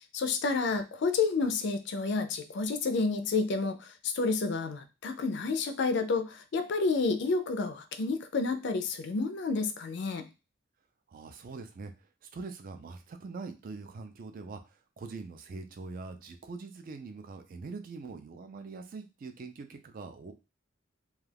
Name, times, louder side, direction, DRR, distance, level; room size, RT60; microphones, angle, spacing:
voice 1, 0.1-10.3, left 4 dB, 60° left, 8 dB, 0.4 m, -30 dB
voice 2, 11.1-20.3, right 4 dB, 45° right, 7 dB, 0.3 m, -43 dB
2.3 x 2.3 x 3.3 m, 0.28 s
head